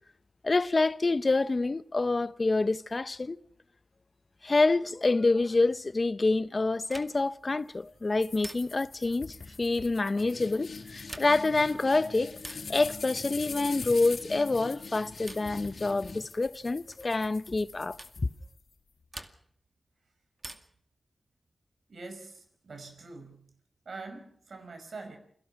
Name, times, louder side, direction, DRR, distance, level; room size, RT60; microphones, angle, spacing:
voice 1, 0.4-3.4 4.4-18.3, left 3 dB, 40° left, 0.8 m, -27 dB
sound 1, 6.9-7.4 8.4-9.0 10.9-11.6 12.4-12.8 14.0-14.4 15.3-15.6 16.9-17.1 18.0-18.2 19.1-19.7 20.4-20.9 22.3-23.0, right 1 dB, 25° right, 2.2 m, -47 dB
sound 2, 8.2-18.7, left 4 dB, 70° left, 4.8 m, -43 dB
voice 2, 21.9-23.5 23.9-25.2, right 3 dB, 70° right, 5.5 m, -44 dB
29.0 x 18.0 x 5.9 m
wide cardioid pair, 70°, 0 cm